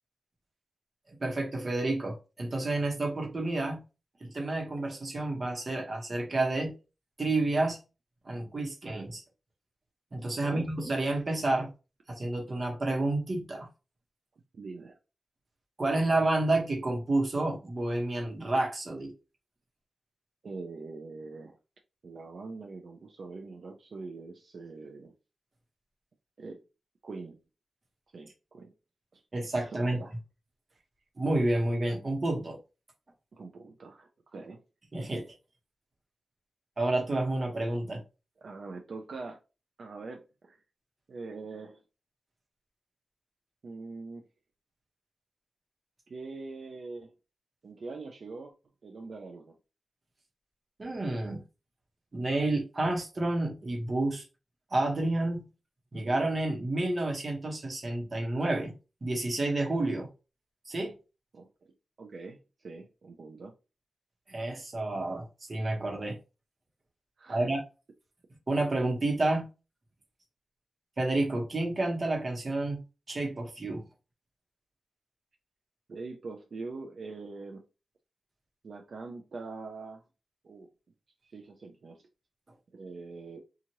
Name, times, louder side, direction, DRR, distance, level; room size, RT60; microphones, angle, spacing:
voice 1, 1.2-3.8 4.2-6.7 7.2-7.8 8.2-9.2 10.1-11.7 12.2-13.7 15.8-19.1 29.3-30.0 31.2-32.6 34.9-35.2 36.8-38.0 50.8-51.4 52.1-54.2 54.7-55.4 55.9-58.7 59.0-60.1 60.7-61.0 64.3-66.2 67.3-67.6 68.5-69.5 71.0-72.8 73.1-73.8, right 2 dB, 40° right, 1.0 m, -30 dB
voice 2, 14.5-15.0 20.4-21.6 22.0-25.1 26.4-26.6 27.0-27.4 28.1-28.7 29.1-29.2 29.6-30.1 33.3-34.6 38.4-39.4 39.8-40.6 41.1-41.8 43.6-44.2 46.1-47.1 47.6-48.5 48.8-49.5 61.3-61.5 62.0-63.5 67.2-67.5 75.9-77.6 78.6-80.0 80.4-80.7 81.2-82.0 82.7-83.4, right 3 dB, 65° right, 0.5 m, -43 dB
2.8 x 2.4 x 2.9 m
wide cardioid pair, 85°, 0 cm